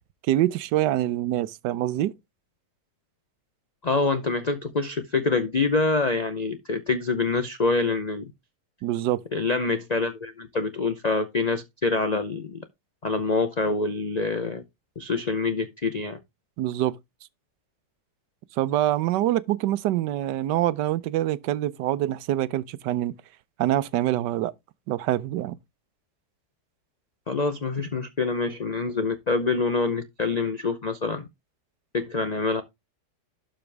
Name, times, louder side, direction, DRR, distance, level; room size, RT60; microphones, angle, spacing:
voice 1, 0.3-2.1 8.8-9.2 16.6-17.0 18.6-23.1 23.6-24.5 24.9-25.6, right 14 dB, 85° right, 1.3 m, -25 dB
voice 2, 3.8-8.2 9.3-12.6 13.0-14.6 15.0-16.2 27.3-31.3 31.9-32.6, left 3 dB, 85° left, 0.3 m, -26 dB
12.0 x 5.1 x 3.3 m
omnidirectional pair, 1.8 m